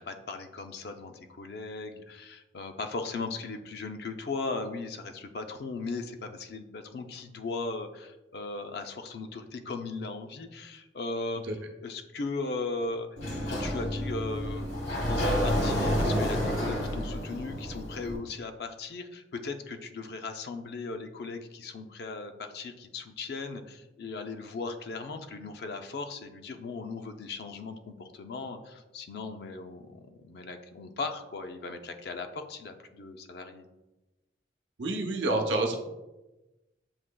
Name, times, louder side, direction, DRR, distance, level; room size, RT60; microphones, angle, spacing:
voice 1, 0.0-11.4 11.8-13.1 13.4-33.7, left 3 dB, 60° left, 6 dB, 0.4 m, -38 dB
Sliding door, 13.2-18.2, equal, 75° left, 1.1 m, -29 dB
voice 2, 34.8-35.7, right 2 dB, 90° right, 2 dB, 0.6 m, -28 dB
7.2 x 2.8 x 2.2 m, 1.0 s
head